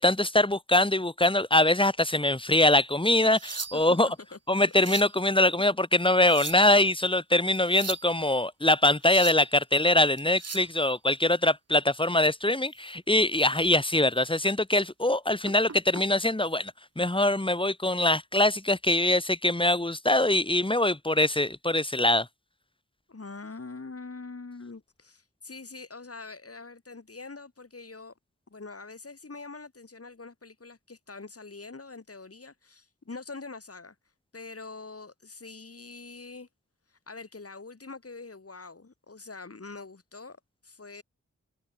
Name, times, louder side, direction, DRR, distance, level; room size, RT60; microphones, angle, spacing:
voice 1, 0.0-4.1 4.5-22.3, left 1 dB, 15° left, 2.3 m, -23 dB
sound 1, 3.1-4.0 4.6-5.2 6.1-6.8 7.6-8.1 8.8-9.5 10.2-10.7 12.8-12.9 13.5-13.7 14.1-14.3 15.4-16.0 17.1-17.3, right 4 dB, 55° right, 1.6 m, -39 dB
voice 2, 23.1-28.1 28.5-33.9 34.3-36.5 36.9-40.4 40.6-41.0, left 3 dB, 50° left, 3.0 m, -44 dB
cardioid pair, 40°, 31 cm